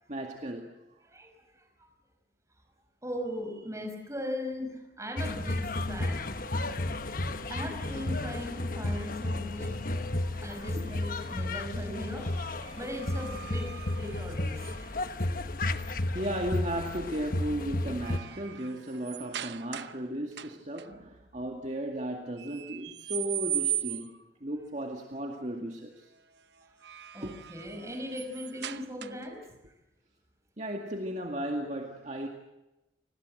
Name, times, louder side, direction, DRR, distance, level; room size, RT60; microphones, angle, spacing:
voice 1, 0.1-1.0 9.7-9.8 10.7-11.0 15.5-15.6 16.1-24.1 24.4-26.1 27.2-27.4 30.6-32.3, right 1 dB, 40° right, 2 dB, 2.2 m, -35 dB
voice 2, 3.0-6.3 7.5-12.3 12.7-14.8 27.1-29.4, equal, 15° right, 4 dB, 5.7 m, -38 dB
sound 1, 5.2-18.2, left 2 dB, 50° left, 1.3 m, -33 dB
sound 2, 12.2-15.1 16.9-17.2 17.6-20.0 20.3-20.9 22.4-24.3 26.6-29.4, right 11 dB, 70° right, 0.8 m, -39 dB
29.5 x 20.5 x 7.9 m, 0.98 s
head